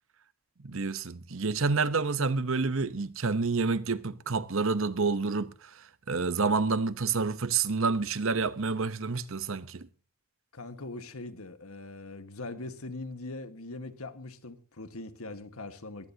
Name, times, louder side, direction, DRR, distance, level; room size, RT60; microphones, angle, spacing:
voice 1, 0.6-9.9, right 4 dB, 65° right, 0.9 m, -29 dB
voice 2, 10.5-16.1, left 2 dB, 80° left, 1.6 m, -41 dB
22.0 x 16.0 x 2.8 m
head